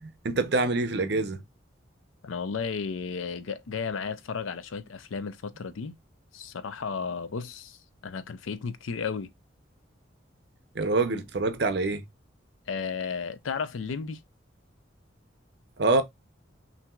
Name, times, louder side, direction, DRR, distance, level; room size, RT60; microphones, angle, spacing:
voice 1, 0.0-1.4 10.7-12.0 15.8-16.0, right 3 dB, 55° right, 0.6 m, -26 dB
voice 2, 2.2-6.0 6.3-9.3 12.7-14.2, left 5 dB, 85° left, 0.5 m, -34 dB
5.7 x 2.7 x 2.3 m
head